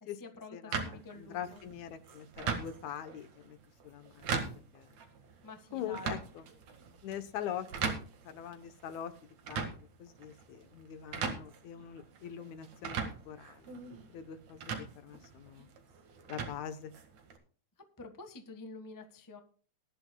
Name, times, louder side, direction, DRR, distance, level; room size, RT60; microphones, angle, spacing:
voice 1, 0.0-1.6 5.4-6.2 18.0-19.4, left 2 dB, 20° left, 6 dB, 0.5 m, -48 dB
voice 2, 0.5-3.6 3.8-5.0 5.7-6.5 7.0-8.0 8.2-9.7 10.0-13.7 14.1-15.7 16.3-16.9, left 9 dB, 75° left, 11 dB, 2.3 m, -43 dB
sound 1, 0.7-17.4, right 5 dB, 65° right, 3.0 m, -41 dB
21.0 x 11.5 x 2.2 m, 0.40 s
omnidirectional pair, 3.4 m